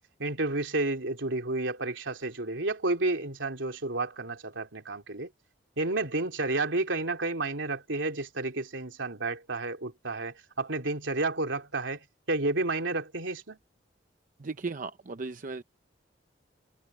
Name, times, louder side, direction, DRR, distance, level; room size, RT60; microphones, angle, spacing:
voice 1, 0.0-5.3 5.8-13.6, right 2 dB, 75° right, 3.2 m, -31 dB
voice 2, 14.4-15.6, right 4 dB, 45° right, 0.7 m, -36 dB
head